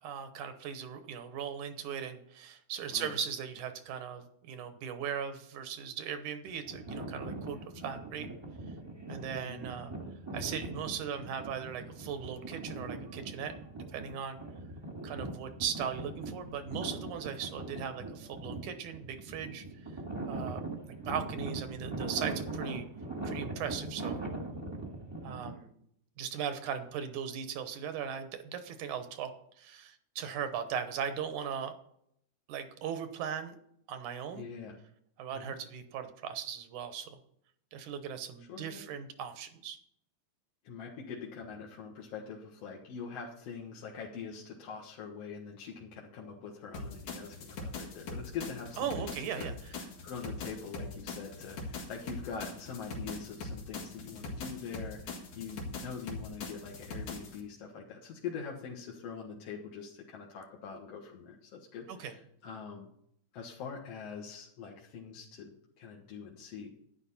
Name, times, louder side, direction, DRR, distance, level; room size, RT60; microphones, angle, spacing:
voice 1, 0.0-8.3 9.1-9.9 10.3-13.5 13.9-14.4 15.0-19.7 20.3-20.7 21.1-22.9 23.3-24.2 25.2-25.7 26.2-29.3 29.6-31.8 32.5-33.6 33.9-34.4 35.2-37.2 37.7-39.8 48.8-49.7 61.9-62.2, right 8 dB, 85° right, 9 dB, 2.5 m, -38 dB
sound 1, 6.5-25.5, right 2 dB, 10° right, 1.2 m, -41 dB
voice 2, 34.3-34.8 35.3-35.5 38.5-38.8 40.6-49.5 49.8-62.9 63.3-66.7, left 6 dB, 60° left, -2 dB, 2.4 m, -44 dB
sound 2, 46.7-57.4, left 3 dB, 80° left, 3.4 m, -42 dB
11.5 x 10.5 x 4.2 m, 0.69 s
omnidirectional pair, 3.5 m